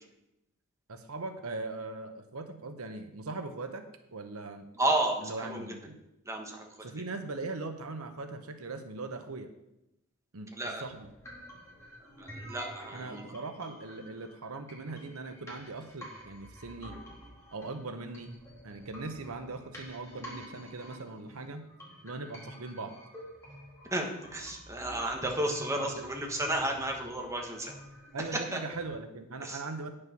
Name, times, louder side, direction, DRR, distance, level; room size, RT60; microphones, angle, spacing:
voice 1, 0.9-3.9 4.1-4.7 5.2-6.0 6.8-9.5 10.3-11.1 12.9-17.0 17.5-18.3 18.6-21.6 22.0-23.0 25.8-26.0 28.1-29.9, right 3 dB, 85° right, 8 dB, 0.9 m, -40 dB
voice 2, 4.8-5.7 6.2-6.7 10.5-10.8 12.2-13.3 23.9-27.7 28.5-28.6 29.4-29.6, right 1 dB, 15° right, 1 dB, 1.3 m, -32 dB
sound 1, 10.8-28.8, equal, 15° left, 2.8 m, -49 dB
9.3 x 6.5 x 5.9 m, 0.88 s
head